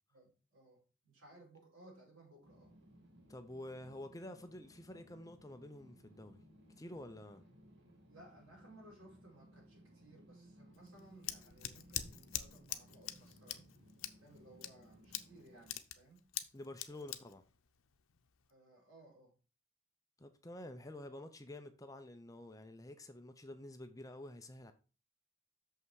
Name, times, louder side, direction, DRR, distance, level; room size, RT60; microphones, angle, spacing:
voice 1, 0.1-2.7 8.1-13.7 14.2-16.3 16.9-17.1 18.5-19.3, right 1 dB, 80° right, 4.7 m, -60 dB
sound 1, 2.4-15.8, equal, 60° right, 1.8 m, -62 dB
voice 2, 3.3-6.4 6.8-7.4 16.5-17.4 20.2-24.7, left 1 dB, 15° left, 0.6 m, -49 dB
Scissors, 10.7-18.5, left 12 dB, 85° left, 0.7 m, -45 dB
6.8 x 5.6 x 4.7 m
head